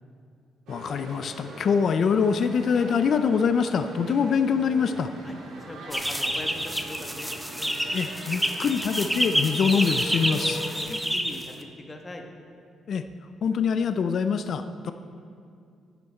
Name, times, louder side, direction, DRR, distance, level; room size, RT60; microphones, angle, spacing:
voice 1, 0.7-5.1 7.9-10.6 12.9-13.1 13.4-14.9, left 6 dB, 60° left, 10 dB, 0.4 m, -24 dB
sound 1, 0.7-10.8, right 1 dB, 80° right, 1.8 m, -40 dB
voice 2, 5.2-7.3 10.9-12.2 14.8-14.9, left 1 dB, 20° left, 3 dB, 1.2 m, -41 dB
sound 2, 5.9-11.6, equal, ahead, 0.7 m, -28 dB
12.0 x 7.2 x 4.3 m, 2.3 s
cardioid pair, 90°, 0 cm